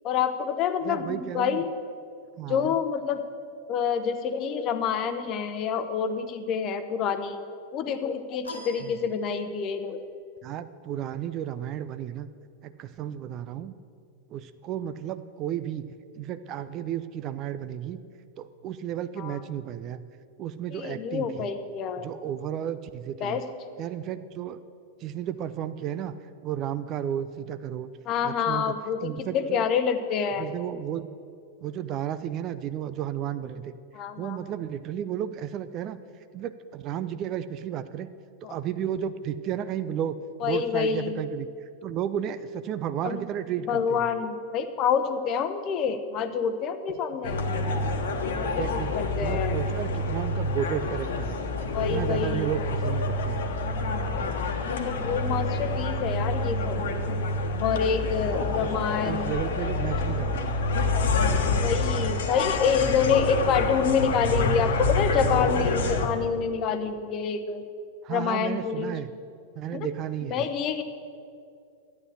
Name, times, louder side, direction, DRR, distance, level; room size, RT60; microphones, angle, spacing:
voice 1, 0.0-1.7 2.5-3.2 3.7-7.4 7.7-10.0 19.2-19.4 20.7-22.1 23.2-23.4 28.1-30.5 33.9-34.4 38.4-38.5 40.4-41.2 43.0-43.2 43.7-47.4 48.4-49.6 51.7-52.5 54.7-56.8 57.6-59.3 61.5-67.6 68.1-69.0 69.7-69.9 70.3-70.8, left 6 dB, 35° left, 10 dB, 1.0 m, -27 dB
voice 2, 0.8-1.6 2.4-2.8 8.8-8.9 10.4-12.3 12.6-13.7 14.3-18.0 18.4-20.0 20.4-21.5 22.0-23.4 23.8-24.6 25.0-26.1 26.4-27.9 28.2-28.7 29.0-29.6 30.4-31.1 31.6-33.7 34.2-36.0 36.3-38.1 38.4-40.2 40.4-41.5 41.8-44.1 47.3-47.7 48.4-48.9 49.2-51.4 51.8-53.5 58.3-58.7 59.0-60.8 68.0-69.1 69.6-70.4, right 10 dB, 35° right, 13 dB, 0.5 m, -33 dB
sound 1, 8.4-9.8, left 2 dB, 80° left, 1.6 m, -44 dB
sound 2, 47.2-66.1, left 2 dB, 60° left, 1.3 m, -27 dB
12.5 x 9.5 x 7.9 m, 2.4 s
figure-of-eight pair, 90°, 0 cm